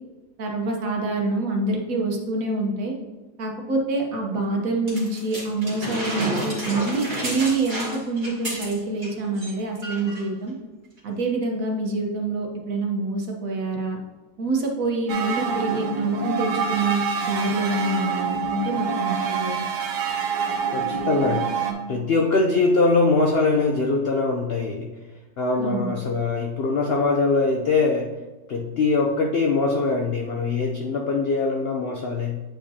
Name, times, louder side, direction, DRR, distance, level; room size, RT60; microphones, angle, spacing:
voice 1, 0.4-2.9 3.4-10.5 11.0-14.0 14.4-19.6 25.6-25.9, right 2 dB, 60° right, 1 dB, 1.4 m, -26 dB
sound 1, 4.9-9.1 9.4-9.5 9.8-10.3 11.0-11.1, right 1 dB, 30° right, 2.2 m, -31 dB
sound 2, 15.1-21.7, right 5 dB, 90° right, 1.4 m, -26 dB
voice 2, 20.7-21.5 21.9-24.9 25.4-28.1 28.5-32.4, left 3 dB, 65° left, 1 dB, 0.6 m, -22 dB
8.6 x 5.0 x 2.8 m, 1.2 s
omnidirectional pair, 1.7 m